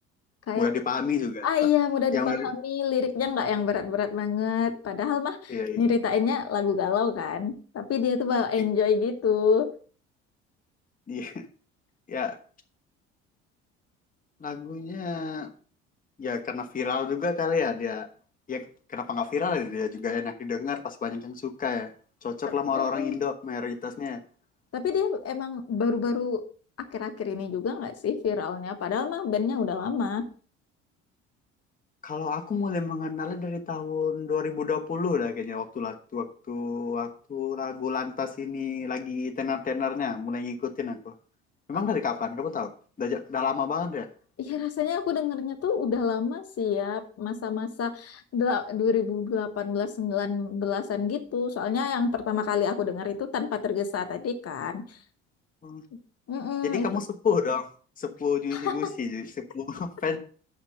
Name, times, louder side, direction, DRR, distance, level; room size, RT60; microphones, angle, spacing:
voice 1, 0.5-1.7 2.1-2.5 5.5-5.8 11.1-11.5 12.1-12.4 14.4-15.5 16.2-18.1 18.5-21.9 22.2-24.2 32.0-41.1 41.7-42.7 43.0-44.1 55.6-55.8 56.6-57.7 58.0-60.2, left 5 dB, 25° left, 5 dB, 1.2 m, -30 dB
voice 2, 1.4-9.7 22.7-23.2 24.7-26.4 26.8-30.2 41.7-41.8 44.4-54.8 56.3-56.9 58.5-58.9, left 6 dB, 45° left, 7 dB, 1.3 m, -27 dB
6.9 x 5.8 x 6.4 m, 0.42 s
hypercardioid pair, 60°, 35 cm